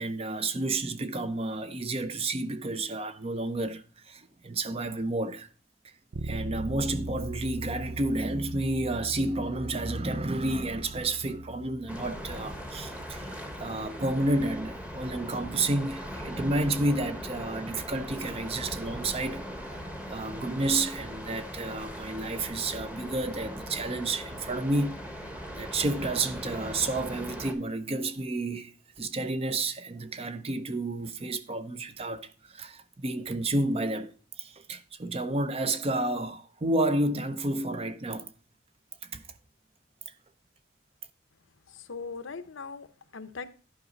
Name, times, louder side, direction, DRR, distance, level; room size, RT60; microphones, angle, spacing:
voice 1, 0.0-5.5 6.2-19.4 19.7-19.8 20.1-25.3 25.5-28.7 29.0-34.1 34.4-38.3 39.0-39.2, right 2 dB, 30° right, 0.5 m, -31 dB
Bass guitar, 6.1-15.9, right 2 dB, 85° right, 0.6 m, -41 dB
sound 1, 11.9-27.5, equal, 5° right, 1.0 m, -39 dB
voice 2, 41.7-43.5, left 4 dB, 80° left, 0.7 m, -40 dB
11.0 x 4.9 x 3.8 m
head